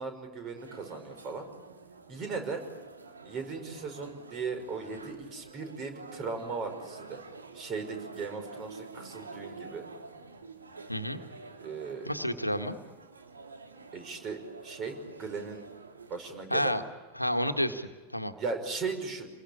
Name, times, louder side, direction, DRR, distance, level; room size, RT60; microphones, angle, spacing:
voice 1, 0.0-1.5 2.1-2.6 3.2-7.2 7.5-9.8 11.6-12.1 13.9-15.6 16.1-16.8 18.4-19.3, right 4 dB, 30° right, 7 dB, 5.5 m, -37 dB
sound 1, 0.6-16.4, right 4 dB, 75° right, 2.3 m, -48 dB
voice 2, 12.0-12.8 16.5-16.8 17.1-18.3, equal, 90° left, 7 dB, 1.6 m, -30 dB
28.5 x 22.0 x 8.7 m, 1.3 s
figure-of-eight pair, 90°, 0 cm